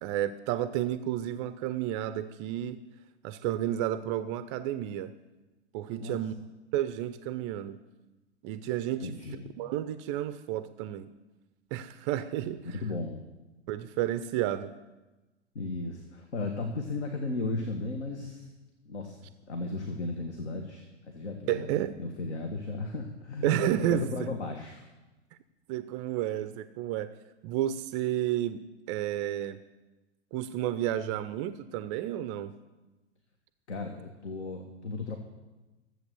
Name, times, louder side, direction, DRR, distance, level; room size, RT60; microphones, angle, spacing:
voice 1, 0.0-2.8 3.2-5.1 5.7-6.3 6.7-7.8 8.4-9.1 9.6-11.1 11.7-12.6 13.7-14.7 21.5-22.0 23.4-24.3 25.7-27.1 27.4-28.6 28.9-29.6 30.3-32.5, right 12 dB, 25° right, 12 dB, 0.4 m, -31 dB
voice 2, 9.0-9.5 12.7-13.2 15.5-18.5 18.8-24.9 33.7-35.2, left 3 dB, 70° left, 4 dB, 1.6 m, -35 dB
14.0 x 7.9 x 6.8 m, 1.1 s
figure-of-eight pair, 105°, 35 cm